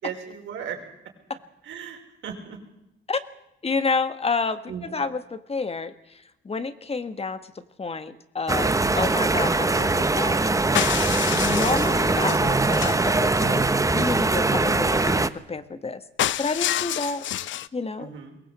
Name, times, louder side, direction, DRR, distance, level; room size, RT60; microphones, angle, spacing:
voice 1, 0.0-0.8 1.6-2.6 4.7-5.0 18.0-18.4, right 8 dB, 75° right, 3 dB, 5.4 m, -37 dB
voice 2, 3.6-4.6 4.9-5.9 6.5-7.4 7.8-10.6 11.3-16.0 16.4-17.3 17.7-18.1, left 4 dB, 30° left, 10 dB, 1.7 m, -29 dB
sound 1, 8.5-15.3, right 3 dB, 15° right, 1.1 m, -22 dB
sound 2, 10.7-13.1 16.2-17.7, left 12 dB, 70° left, 0.8 m, -28 dB
22.5 x 18.5 x 8.3 m, 0.83 s
cardioid pair, 90°, 20 cm